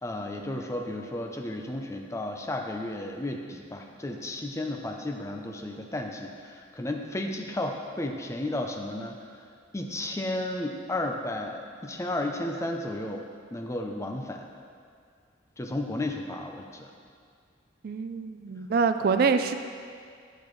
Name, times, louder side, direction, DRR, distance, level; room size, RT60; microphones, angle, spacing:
voice 1, 0.0-9.4 9.7-13.2 13.5-14.5 15.6-16.9, left 1 dB, 15° left, 3 dB, 0.5 m, -33 dB
voice 2, 17.8-19.5, right 5 dB, 50° right, 9 dB, 0.3 m, -25 dB
8.3 x 6.8 x 3.1 m, 2.2 s
head